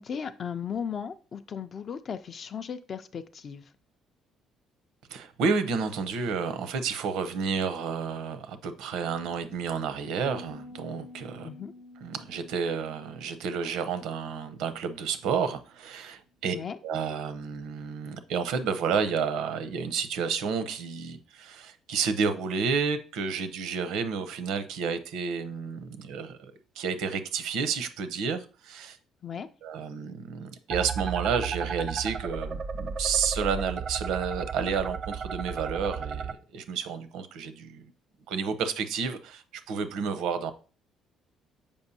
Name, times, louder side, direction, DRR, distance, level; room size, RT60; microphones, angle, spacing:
voice 1, 0.0-3.7 11.4-11.7 16.5-16.8 29.2-29.5, left 7 dB, 40° left, 0.3 m, -36 dB
voice 2, 5.1-11.5 12.0-16.6 16.8-29.0 29.6-37.9 38.3-40.5, right 6 dB, 80° right, 0.7 m, -31 dB
Piano, 10.3-15.9, left 2 dB, 80° left, 0.8 m, -50 dB
sound 1, 30.7-36.3, right 6 dB, 35° right, 0.3 m, -34 dB
7.0 x 5.2 x 2.7 m
cardioid pair, 135°, 0 cm